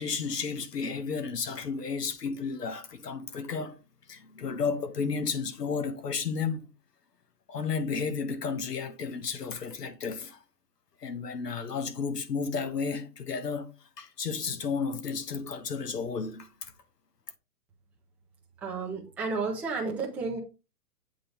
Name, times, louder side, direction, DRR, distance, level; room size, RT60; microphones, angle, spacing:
voice 1, 0.0-3.8 4.1-6.7 7.5-10.4 11.0-13.7 14.0-16.7, left 5 dB, 90° left, 1.7 m, -32 dB
voice 2, 18.6-20.4, right 4 dB, 5° right, 0.5 m, -32 dB
8.1 x 3.8 x 4.6 m
hypercardioid pair, 150°, 46 cm